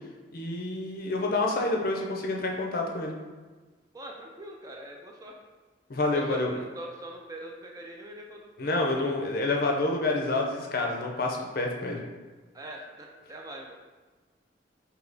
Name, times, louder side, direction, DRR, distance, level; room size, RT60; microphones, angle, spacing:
voice 1, 0.3-3.1 5.9-6.5 8.6-12.0, left 2 dB, 50° left, 0 dB, 0.5 m, -28 dB
voice 2, 3.9-5.4 6.1-8.7 12.5-13.7, right 1 dB, 20° right, 0 dB, 0.3 m, -42 dB
3.4 x 2.8 x 3.9 m, 1.3 s
head